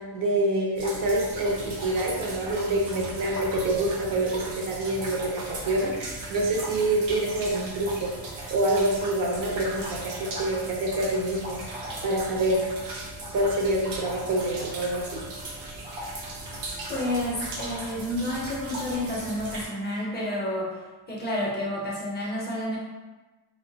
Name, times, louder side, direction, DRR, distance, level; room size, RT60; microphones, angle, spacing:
voice 1, 0.0-8.1 8.5-11.6 12.0-12.9 13.3-15.3, right 1 dB, 50° right, -1 dB, 0.5 m, -26 dB
sound 1, 0.8-19.7, right 1 dB, 85° right, 0.7 m, -37 dB
voice 2, 16.9-20.8 21.1-22.8, left 1 dB, 25° left, -4 dB, 0.4 m, -30 dB
2.4 x 2.0 x 2.6 m, 1.2 s
cardioid pair, 125°, 43 cm